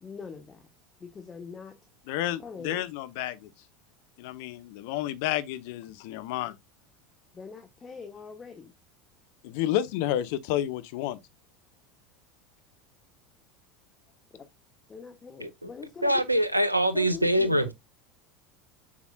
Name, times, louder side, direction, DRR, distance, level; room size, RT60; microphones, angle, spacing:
voice 1, 0.0-0.6 1.0-1.8 2.4-2.9 7.3-8.7 14.3-14.5 14.9-16.2 16.9-17.7, left 5 dB, 25° left, 1.1 m, -42 dB
voice 2, 2.1-3.5 4.2-6.6 9.4-11.2, left 13 dB, 55° left, 0.7 m, -30 dB
voice 3, 16.0-17.7, right 1 dB, 90° right, 0.7 m, -24 dB
7.3 x 6.1 x 2.3 m
figure-of-eight pair, 75°, 0 cm